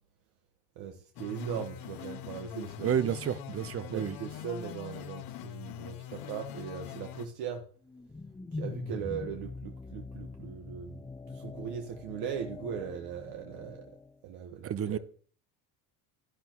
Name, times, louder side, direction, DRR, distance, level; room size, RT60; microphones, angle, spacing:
voice 1, 0.7-3.2 3.8-7.6 8.5-11.0 11.3-13.9 14.2-15.0, right 8 dB, 65° right, 1.5 m, -39 dB
sound 1, 1.2-7.3, left 11 dB, 55° left, 1.0 m, -43 dB
voice 2, 2.8-4.2 14.6-15.0, right 9 dB, 35° right, 0.7 m, -30 dB
sound 2, 7.8-14.2, left 3 dB, 10° left, 0.6 m, -43 dB
11.5 x 11.0 x 3.0 m
supercardioid pair, 105°, 41 cm